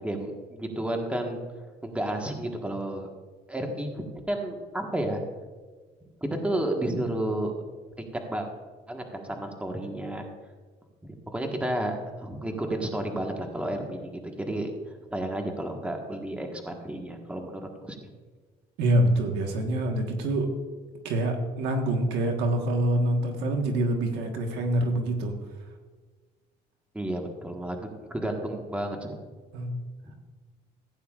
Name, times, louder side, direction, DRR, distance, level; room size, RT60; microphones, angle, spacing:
voice 1, 0.0-1.4 1.8-3.1 3.5-5.2 6.2-7.6 8.1-8.5 8.9-10.2 11.0-14.7 15.1-18.0 26.9-29.2 30.0-30.1, right 1 dB, 5° right, 2 dB, 1.5 m, -31 dB
voice 2, 18.8-20.5 21.0-25.3 29.5-29.7, right 1 dB, 90° right, 3 dB, 1.5 m, -25 dB
15.5 x 9.2 x 2.5 m, 1.4 s
cardioid pair, 110°, 17 cm